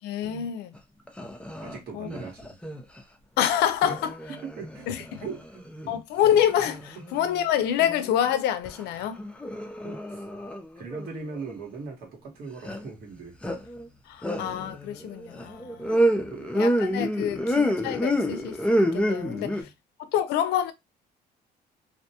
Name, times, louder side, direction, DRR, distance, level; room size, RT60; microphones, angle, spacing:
voice 1, 0.0-0.7 1.9-2.1 3.4-4.1 4.9-5.0 5.9-9.2 14.1-16.0 16.5-19.6 20.1-20.7, left 10 dB, 80° left, 0.5 m, -27 dB
sound 1, 0.7-0.8 1.1-1.8 2.1-3.0 3.8-5.9 6.2-7.5 7.8-8.8 9.1-11.5 12.6-12.9 13.4-13.9 14.2-19.6, equal, 5° left, 0.5 m, -29 dB
voice 2, 1.6-2.6 4.4-4.9 5.2-6.0 6.9-7.0 9.8-10.2 10.8-13.3 16.3-16.5 17.2-17.4 19.2-19.7, right 4 dB, 60° right, 1.4 m, -40 dB
2.6 x 2.2 x 2.8 m
cardioid pair, 110°, 17 cm